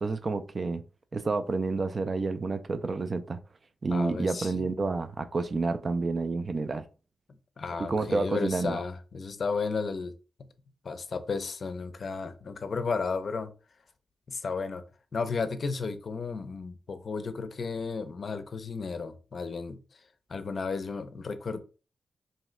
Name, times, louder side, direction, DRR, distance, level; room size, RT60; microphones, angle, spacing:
voice 1, 0.0-0.8 1.1-3.4 3.8-6.9 7.8-8.8, right 3 dB, 50° right, 0.4 m, -29 dB
voice 2, 3.9-4.8 7.6-10.1 10.4-10.5 10.8-13.5 14.3-14.8 15.1-19.8 20.3-21.6, left 4 dB, 60° left, 0.4 m, -33 dB
2.6 x 2.4 x 3.1 m
cardioid pair, 65°, 0 cm